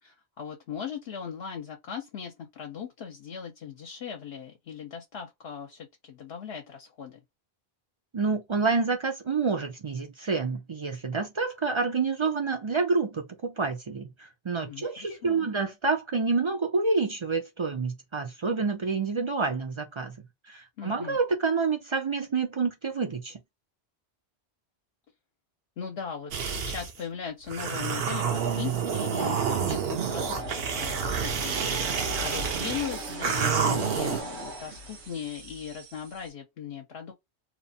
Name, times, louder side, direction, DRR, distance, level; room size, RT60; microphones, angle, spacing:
voice 1, 0.0-7.2 14.6-15.5 20.8-21.2 25.8-31.7 32.2-37.1, left 7 dB, 75° left, 0.9 m, -38 dB
voice 2, 8.1-14.1 14.4-20.1 20.5-23.4, right 4 dB, 45° right, 0.4 m, -28 dB
sound 1, 26.3-26.9 27.5-34.2, right 6 dB, 70° right, 0.8 m, -29 dB
sound 2, 28.3-36.3, right 2 dB, 85° right, 1.1 m, -39 dB
2.8 x 2.1 x 2.6 m
omnidirectional pair, 1.1 m